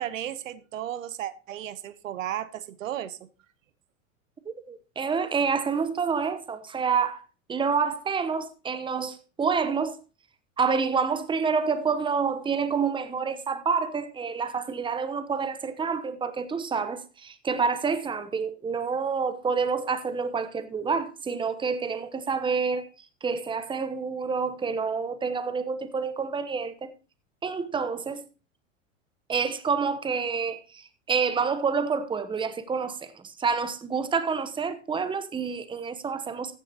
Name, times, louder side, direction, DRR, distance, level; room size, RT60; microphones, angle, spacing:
voice 1, 0.0-3.2, right 11 dB, 75° right, 1.0 m, -34 dB
voice 2, 4.7-7.2 7.5-10.0 10.6-22.9 23.2-26.9 27.4-28.2 29.3-36.6, right 5 dB, 10° right, 1.0 m, -28 dB
14.0 x 9.7 x 2.9 m
hypercardioid pair, 95°, 39 cm